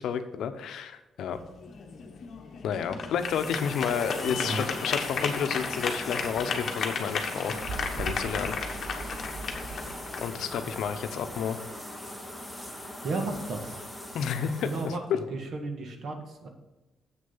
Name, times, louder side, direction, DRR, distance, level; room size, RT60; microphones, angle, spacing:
voice 1, 0.0-1.4 2.6-7.5 7.9-8.5 10.2-11.6 14.1-14.9, left 7 dB, 70° left, 9 dB, 0.7 m, -31 dB
sound 1, 1.3-11.4, left 5 dB, 45° left, 1.1 m, -35 dB
sound 2, 3.1-14.9, left 1 dB, 5° right, 1.0 m, -41 dB
sound 3, 4.0-10.3, right 3 dB, 30° right, 0.7 m, -42 dB
voice 2, 4.2-4.7 12.8-13.8 14.6-16.5, right 2 dB, 55° right, 4 dB, 1.5 m, -34 dB
7.7 x 6.6 x 5.6 m, 1.0 s
cardioid pair, 160°, 0 cm